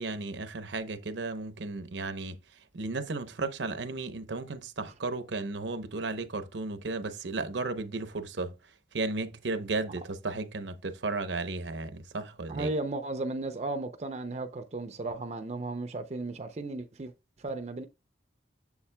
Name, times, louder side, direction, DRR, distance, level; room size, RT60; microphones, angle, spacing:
voice 1, 0.0-2.4 2.7-8.5 8.9-12.7, right 3 dB, 75° right, 0.8 m, -34 dB
voice 2, 12.5-17.1 17.4-17.9, right 2 dB, 35° right, 0.5 m, -35 dB
7.1 x 7.1 x 2.2 m
head